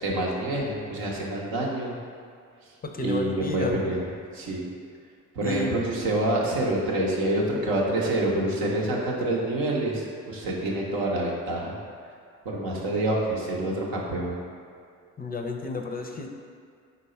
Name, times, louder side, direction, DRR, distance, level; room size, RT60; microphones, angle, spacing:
voice 1, 0.0-1.9 3.0-4.0 4.3-4.7 5.3-11.7 12.4-14.4, right 1 dB, 85° right, -3 dB, 0.7 m, -27 dB
voice 2, 2.8-3.8 5.4-5.8 15.2-16.3, left 3 dB, 25° left, 2 dB, 0.4 m, -31 dB
3.8 x 2.3 x 4.2 m, 2.2 s
hypercardioid pair, 45°, 36 cm